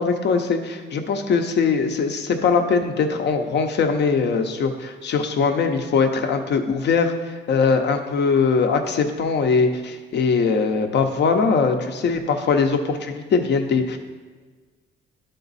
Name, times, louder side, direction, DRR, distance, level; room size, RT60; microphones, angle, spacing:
voice 1, 0.0-14.0, left 5 dB, 60° left, 5 dB, 0.8 m, -21 dB
11.0 x 3.8 x 4.1 m, 1.4 s
cardioid pair, 90°, 20 cm